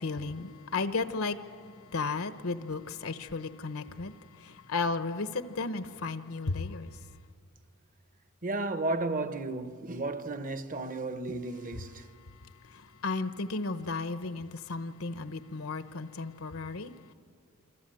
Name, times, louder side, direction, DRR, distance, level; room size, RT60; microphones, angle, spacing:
voice 1, 0.0-7.1 12.0-17.1, left 3 dB, 75° left, 1.0 m, -35 dB
voice 2, 8.4-12.0, right 2 dB, 40° right, 1.1 m, -33 dB
27.5 x 26.0 x 7.7 m
head